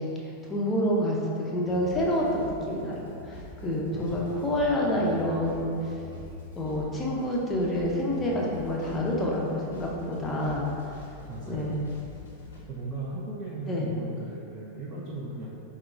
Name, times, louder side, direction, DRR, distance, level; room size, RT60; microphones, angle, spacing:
voice 1, 0.5-5.9 6.6-10.6 11.5-11.8 13.7-13.9, equal, 20° left, -3 dB, 0.5 m, -28 dB
sound 1, 1.6-12.6, left 2 dB, 65° left, 0.5 m, -44 dB
voice 2, 3.9-4.3 11.2-11.7 12.7-15.5, right 2 dB, 35° right, -6 dB, 0.4 m, -37 dB
4.6 x 2.1 x 2.3 m, 2.8 s
figure-of-eight pair, 90°, 0 cm